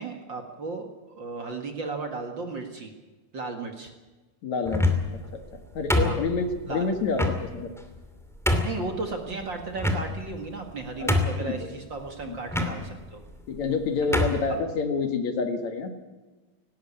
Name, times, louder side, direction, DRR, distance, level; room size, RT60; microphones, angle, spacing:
voice 1, 0.0-2.9 3.3-3.9 6.0-6.2 6.7-6.9 8.6-13.2 14.0-14.2, right 3 dB, 40° right, 4 dB, 2.2 m, -35 dB
voice 2, 4.4-4.9 5.5-7.7 11.0-11.1 11.4-11.7 12.3-12.4 13.5-15.9, left 4 dB, 65° left, 6 dB, 3.0 m, -28 dB
sound 1, 4.6-5.2 5.9-6.6 7.2-7.4 8.0-8.1 8.4-8.8 9.8-10.3 10.7-10.8 11.1-11.5 12.5-12.7 13.6-13.7 14.1-14.4, left 1 dB, ahead, 1.9 m, -24 dB
18.5 x 18.0 x 8.6 m, 1.2 s
omnidirectional pair, 3.6 m